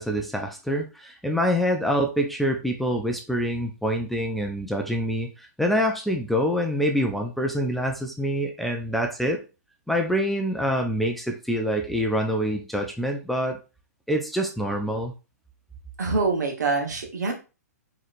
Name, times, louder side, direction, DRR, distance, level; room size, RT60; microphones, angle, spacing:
voice 1, 0.0-9.4 9.9-13.6 14.1-15.1, equal, ahead, 2 dB, 0.3 m, -26 dB
voice 2, 16.0-17.3, right 3 dB, 80° right, 3 dB, 1.2 m, -25 dB
4.1 x 3.0 x 2.5 m, 0.31 s
hypercardioid pair, 145°, 9 cm